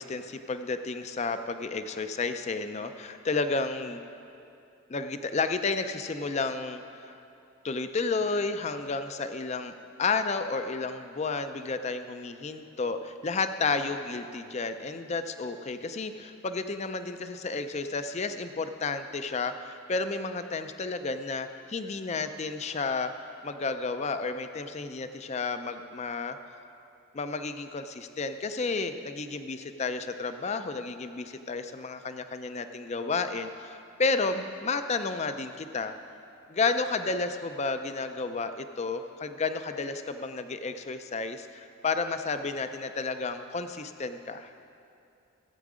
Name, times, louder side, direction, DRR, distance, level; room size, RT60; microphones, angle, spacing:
voice 1, 0.0-4.0 4.9-7.2 7.6-23.1 23.4-26.4 27.1-36.0 36.5-44.5, left 4 dB, 30° left, 9 dB, 0.4 m, -32 dB
14.5 x 8.3 x 4.9 m, 2.7 s
head